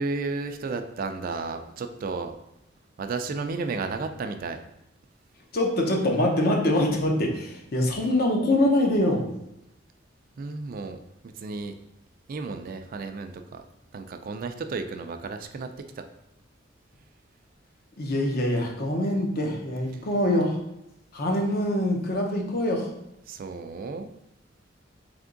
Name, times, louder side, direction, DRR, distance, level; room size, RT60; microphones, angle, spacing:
voice 1, 0.0-2.4 3.0-4.6 10.4-11.0 11.4-11.7 12.3-13.6 13.9-15.7 16.0-16.1 19.9-20.0 23.3-24.1, right 4 dB, 50° right, 7 dB, 0.3 m, -33 dB
voice 2, 5.5-9.3 18.0-20.6 21.1-22.9, left 1 dB, 55° left, 1 dB, 0.8 m, -24 dB
3.5 x 3.4 x 3.8 m, 0.83 s
head